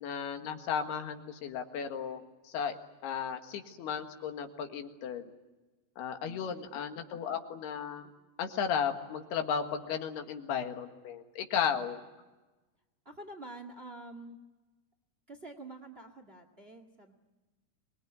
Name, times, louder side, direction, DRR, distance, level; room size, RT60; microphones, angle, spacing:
voice 1, 0.0-2.8 3.0-5.3 6.0-8.1 8.4-12.0, left 7 dB, 75° left, 5 dB, 3.7 m, -35 dB
voice 2, 6.2-6.7 11.7-11.8 13.0-14.4 15.3-17.1, right 2 dB, 40° right, 7 dB, 0.8 m, -47 dB
26.0 x 21.5 x 9.5 m, 1.2 s
omnidirectional pair, 4.7 m